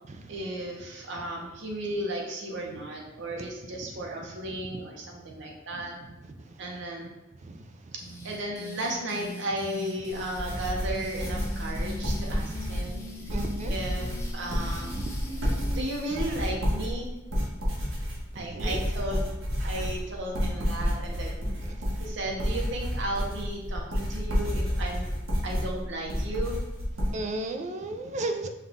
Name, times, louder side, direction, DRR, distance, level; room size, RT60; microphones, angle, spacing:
voice 1, 0.3-6.1 6.6-7.1 8.2-13.3 13.6-15.0 15.4-17.1 18.3-19.3 19.6-21.4 22.0-25.1 25.4-26.6, right 1 dB, 60° right, -1 dB, 0.8 m, -35 dB
sound 1, 8.0-16.3, left 1 dB, 15° left, 0.6 m, -42 dB
sound 2, 10.1-27.1, equal, 90° right, 1.3 m, -30 dB
voice 2, 13.3-13.7 18.4-18.8 21.5-21.6 27.1-28.5, right 2 dB, 35° right, 6 dB, 0.4 m, -33 dB
5.5 x 2.4 x 3.6 m, 0.98 s
head